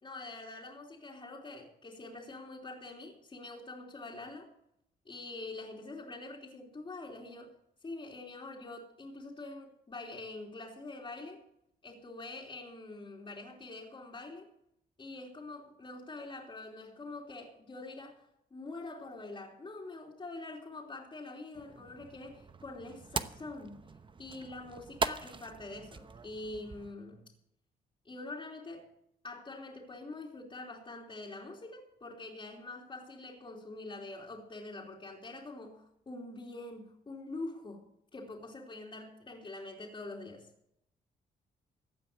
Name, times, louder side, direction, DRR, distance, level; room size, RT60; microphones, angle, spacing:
voice 1, 0.0-4.5 5.0-7.5 7.8-11.4 11.8-14.5 15.0-23.8 24.2-27.2 28.0-28.9 29.2-37.8 38.1-40.5, left 2 dB, 30° left, -3 dB, 3.2 m, -45 dB
sound 1, 21.5-26.9, right 4 dB, 30° right, 0.9 m, -40 dB
15.5 x 9.2 x 6.7 m, 0.76 s
cardioid pair, 85°, 17 cm